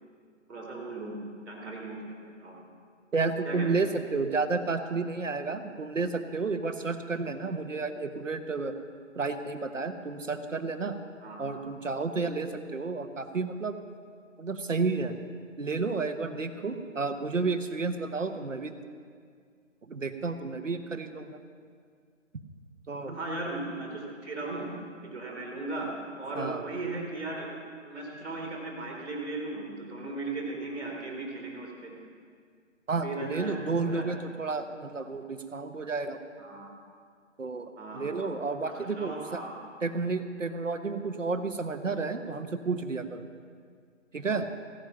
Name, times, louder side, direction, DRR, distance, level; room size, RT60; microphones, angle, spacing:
voice 1, 0.5-1.1 1.4-2.6 3.4-3.7 11.2-11.6 23.0-24.7 25.0-25.9 26.2-27.5 27.8-31.9 33.0-34.0 34.5-34.6 36.4-36.7 37.8-38.3 38.6-39.5, right 2 dB, ahead, -15 dB, 1.0 m, -37 dB
voice 2, 3.1-8.7 9.1-11.0 11.4-13.8 14.4-15.2 15.6-18.7 19.8-21.4 22.9-23.2 26.3-26.6 32.9-36.2 37.4-39.4 39.8-43.2 44.1-44.4, right 4 dB, 70° right, 8 dB, 1.3 m, -31 dB
15.5 x 10.5 x 5.9 m, 2.1 s
figure-of-eight pair, 160°, 39 cm